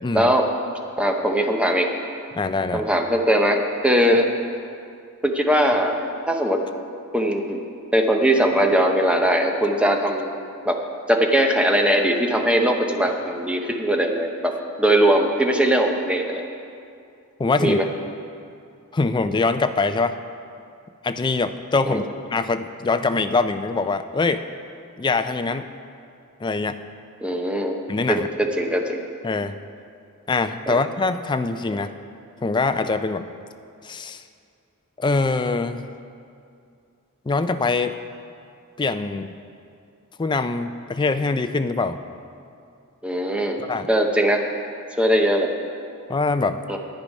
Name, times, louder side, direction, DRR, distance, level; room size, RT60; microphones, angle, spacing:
voice 1, 0.1-0.5 1.0-1.9 2.7-4.3 5.2-6.0 6.3-6.6 7.1-7.6 7.9-10.3 10.7-10.8 11.1-14.5 14.8-16.4 17.6-17.8 21.9-22.1 27.2-27.8 28.1-29.0 30.7-30.8 43.0-43.6 43.9-44.4 45.0-45.5 46.7-46.8, equal, 5° right, 3 dB, 0.7 m, -20 dB
voice 2, 2.3-2.9 17.4-17.8 18.9-20.2 21.0-24.4 25.0-25.6 26.4-26.8 27.9-28.3 29.2-29.6 30.3-31.9 32.4-33.3 33.8-34.2 35.0-35.9 37.3-38.0 38.8-39.3 40.2-42.0 43.7-43.9 46.1-46.6, left 3 dB, 20° left, 10 dB, 0.3 m, -23 dB
10.5 x 9.5 x 5.3 m, 2.4 s
head